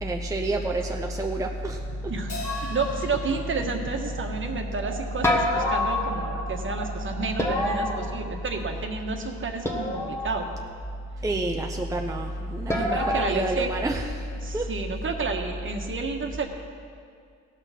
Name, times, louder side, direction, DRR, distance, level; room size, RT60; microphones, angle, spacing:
voice 1, 0.0-1.8 11.2-14.1 14.5-14.7, right 2 dB, 10° right, 2 dB, 0.7 m, -28 dB
sound 1, 1.7-8.3, right 7 dB, 85° right, 0.9 m, -41 dB
Crash cymbal, 2.3-5.0, left 2 dB, 50° left, 2.1 m, -42 dB
sound 2, 2.4-3.4 5.2-6.6 7.4-8.7 9.6-10.5 12.7-13.3, left 1 dB, 10° left, 1.4 m, -28 dB
voice 2, 2.7-10.5 12.7-13.7 14.4-16.5, right 4 dB, 40° right, 3 dB, 1.4 m, -31 dB
16.5 x 5.9 x 5.8 m, 2.2 s
cardioid pair, 90°, 30 cm